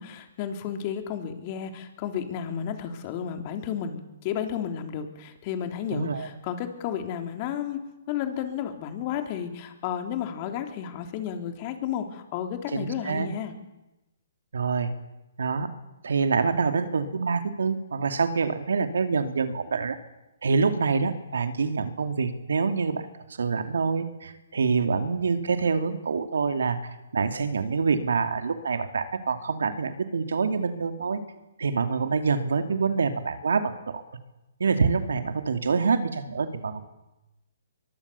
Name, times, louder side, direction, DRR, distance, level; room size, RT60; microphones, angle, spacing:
voice 1, 0.0-7.8 8.1-13.5, left 9 dB, 35° left, 6 dB, 3.5 m, -32 dB
voice 2, 5.9-6.3 12.7-13.3 14.5-14.9 15.4-15.7 16.0-20.0 20.4-23.1 23.4-26.8 27.1-31.2 31.6-34.0 34.6-36.8, right 5 dB, 80° right, 8 dB, 2.5 m, -26 dB
23.5 x 22.5 x 7.0 m, 1.0 s
hypercardioid pair, 140°, 0 cm